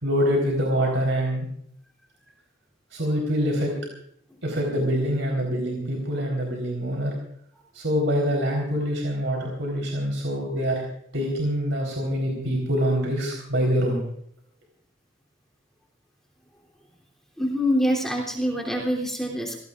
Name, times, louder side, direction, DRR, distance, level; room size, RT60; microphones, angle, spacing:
voice 1, 0.0-1.5 2.9-3.7 4.4-7.2 7.7-10.8 11.1-14.0, equal, 90° right, 0 dB, 4.1 m, -25 dB
voice 2, 17.4-19.6, equal, 5° left, -1 dB, 3.1 m, -25 dB
28.0 x 17.5 x 2.5 m, 0.66 s
head